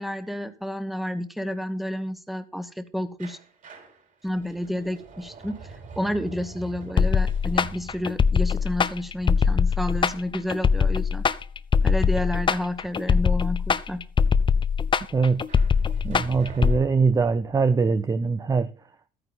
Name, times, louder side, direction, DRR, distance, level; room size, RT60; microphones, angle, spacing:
voice 1, 0.0-3.4 4.2-11.2 11.8-14.0, left 1 dB, ahead, 1.3 m, -30 dB
sound 1, 3.2-10.0 15.5-17.7, right 4 dB, 50° right, 5.0 m, -44 dB
sound 2, 7.0-16.8, left 6 dB, 30° left, 0.6 m, -22 dB
voice 2, 15.1-15.5 16.0-18.7, right 4 dB, 20° right, 0.5 m, -22 dB
12.5 x 9.4 x 4.1 m
cardioid pair, 110°, 17 cm